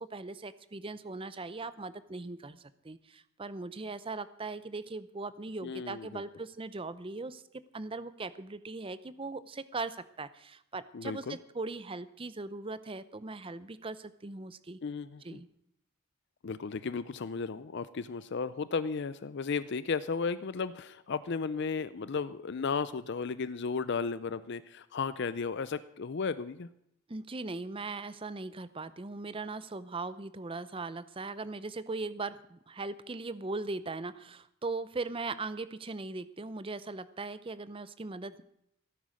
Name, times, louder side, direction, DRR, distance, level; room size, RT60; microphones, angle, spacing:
voice 1, 0.0-7.4 7.7-14.8 15.2-15.5 27.1-38.4, right 3 dB, 25° right, 15 dB, 0.6 m, -39 dB
voice 2, 5.6-6.2 10.9-11.4 14.8-15.4 16.4-26.7, left 5 dB, 50° left, 15 dB, 0.5 m, -34 dB
16.0 x 9.4 x 6.3 m, 0.75 s
head